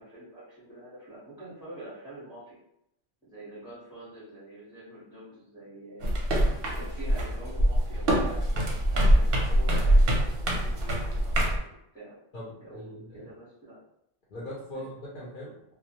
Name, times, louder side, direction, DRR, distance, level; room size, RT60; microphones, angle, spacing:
voice 1, 0.0-2.6 3.2-6.1 6.6-11.7 11.9-12.2 12.4-13.8 14.7-14.8, right 1 dB, 5° right, -12 dB, 0.8 m, -46 dB
sound 1, 6.0-11.6, right 1 dB, 60° right, 0.7 m, -24 dB
voice 2, 12.3-13.2 14.3-15.7, left 1 dB, 50° left, -7 dB, 0.7 m, -41 dB
2.3 x 2.1 x 2.8 m, 0.77 s
omnidirectional pair, 1.2 m